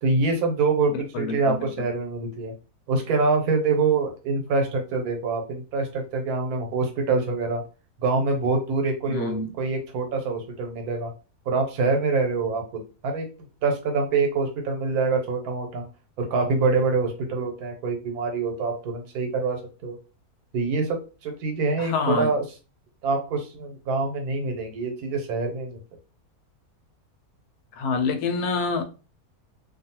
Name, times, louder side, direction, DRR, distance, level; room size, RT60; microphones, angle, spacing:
voice 1, 0.0-2.5 2.9-7.6 8.0-11.1 11.5-13.3 13.6-15.8 16.2-20.0 20.5-22.4 23.0-25.8, right 4 dB, 75° right, 1.2 m, -25 dB
voice 2, 0.9-1.7 9.1-9.5 21.8-22.3 27.8-28.8, left 4 dB, 80° left, 1.1 m, -27 dB
2.6 x 2.3 x 2.8 m
omnidirectional pair, 1.6 m